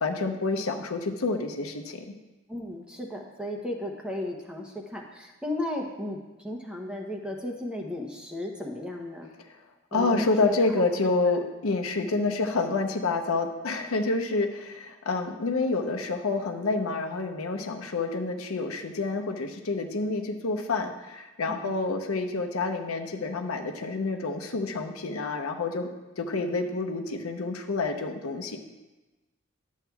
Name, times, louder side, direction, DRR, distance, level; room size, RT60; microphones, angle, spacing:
voice 1, 0.0-2.1 9.9-25.9 26.2-28.6, left 3 dB, 85° left, 4 dB, 0.7 m, -28 dB
voice 2, 2.5-6.2 6.4-9.3 9.9-10.6 12.0-12.2 21.5-21.8, left 1 dB, 5° right, 1 dB, 0.7 m, -35 dB
11.5 x 7.3 x 2.3 m, 1.1 s
head